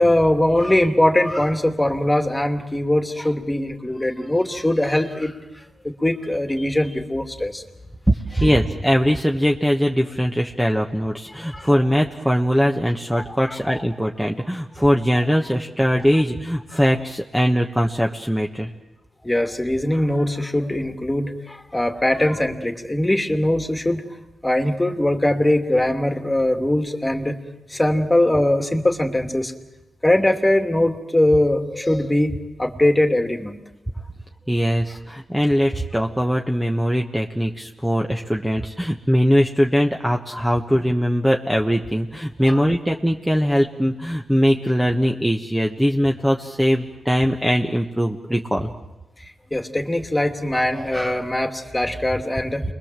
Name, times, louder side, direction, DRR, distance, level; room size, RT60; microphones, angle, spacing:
voice 1, 0.0-7.6 8.4-8.5 11.3-11.7 13.3-13.6 19.2-24.0 24.4-27.4 27.7-29.5 30.0-33.6 40.3-40.4 42.5-42.6 49.5-52.6, left 1 dB, 10° left, 6 dB, 2.5 m, -21 dB
voice 2, 8.4-18.7 34.5-48.7, equal, 5° right, 1 dB, 1.5 m, -21 dB
29.5 x 21.5 x 7.6 m, 1.0 s
cardioid pair, 85°, 0 cm